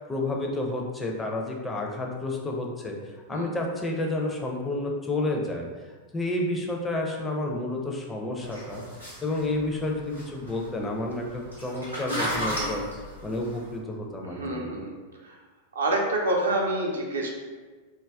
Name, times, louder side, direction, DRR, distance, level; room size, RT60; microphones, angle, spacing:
voice 1, 0.1-3.0 3.3-5.7 6.1-8.8 9.2-12.8 13.2-14.7, left 2 dB, 15° left, 0 dB, 0.4 m, -30 dB
sound 1, 8.4-13.8, equal, 90° left, 0.8 m, -35 dB
voice 2, 14.2-15.0 15.7-17.3, right 1 dB, 70° right, -1 dB, 0.4 m, -27 dB
2.3 x 2.2 x 3.3 m, 1.4 s
figure-of-eight pair, 90°, 0 cm